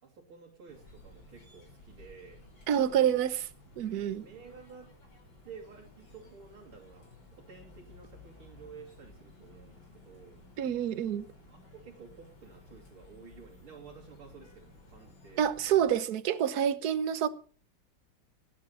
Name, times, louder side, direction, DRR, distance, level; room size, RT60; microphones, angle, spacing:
voice 1, 0.0-2.4 2.7-3.2 4.2-4.9 5.4-10.4 11.5-15.5, right 5 dB, 80° right, 3.4 m, -52 dB
sound 1, 0.7-16.0, left 2 dB, 60° left, 5.0 m, -56 dB
voice 2, 2.7-3.4 3.8-4.2 10.6-11.3 15.4-17.3, right 9 dB, 55° right, 1.3 m, -27 dB
18.5 x 8.5 x 5.8 m
omnidirectional pair, 2.3 m